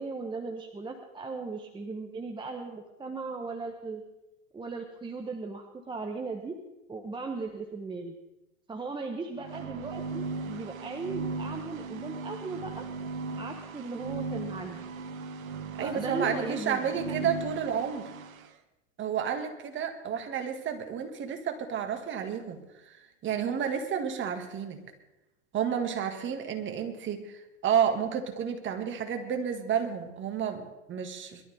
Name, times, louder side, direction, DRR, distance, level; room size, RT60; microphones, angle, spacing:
voice 1, 0.0-4.0 4.5-6.6 6.9-8.2 8.7-12.9 13.4-14.9 15.8-17.3, right 3 dB, 10° right, 3 dB, 1.1 m, -37 dB
sound 1, 9.4-18.5, right 4 dB, 80° right, 1.3 m, -37 dB
voice 2, 15.8-18.1 19.0-24.8 25.5-31.4, right 8 dB, 30° right, 5 dB, 1.9 m, -31 dB
22.0 x 12.5 x 3.5 m, 0.97 s
hypercardioid pair, 115°, 41 cm